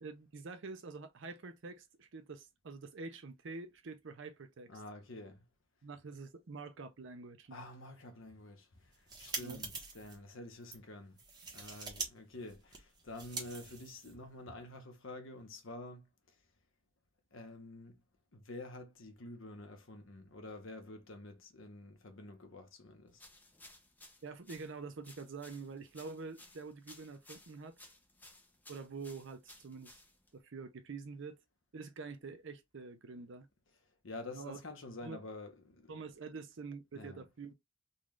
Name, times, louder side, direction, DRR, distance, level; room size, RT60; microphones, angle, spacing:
voice 1, 0.0-4.8 5.8-7.6 9.4-9.6 24.2-27.7 28.7-30.0 30.3-31.4 31.7-33.5 34.3-34.6 35.0-35.2 35.9-37.5, right 4 dB, 65° right, 0.6 m, -46 dB
voice 2, 4.7-5.4 7.5-16.3 17.3-18.0 18.3-23.2 34.0-35.9 36.9-37.2, left 2 dB, 70° left, 0.9 m, -49 dB
sound 1, 8.8-10.2 10.6-10.8 11.2-12.1 12.3-14.3, right 4 dB, 20° right, 1.1 m, -44 dB
sound 2, 23.1-30.4, left 2 dB, 10° left, 0.6 m, -59 dB
3.9 x 2.4 x 3.2 m
head